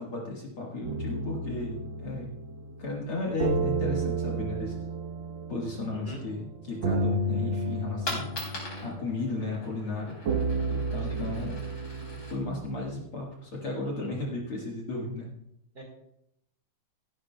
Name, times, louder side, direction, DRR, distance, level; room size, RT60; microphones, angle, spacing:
voice 1, 0.0-2.3 2.8-4.8 5.5-10.2 10.7-11.6 12.3-15.3, left 2 dB, 50° left, -3 dB, 2.1 m, -34 dB
sound 1, 0.8-12.9, right 2 dB, 90° right, 1.1 m, -32 dB
voice 2, 5.9-6.2 11.0-11.2 14.0-14.1 15.7-15.8, right 1 dB, 35° right, -1 dB, 2.1 m, -43 dB
Coin (dropping), 7.7-13.7, left 2 dB, 30° left, 4.0 m, -42 dB
15.0 x 11.5 x 2.3 m, 0.78 s
omnidirectional pair, 3.7 m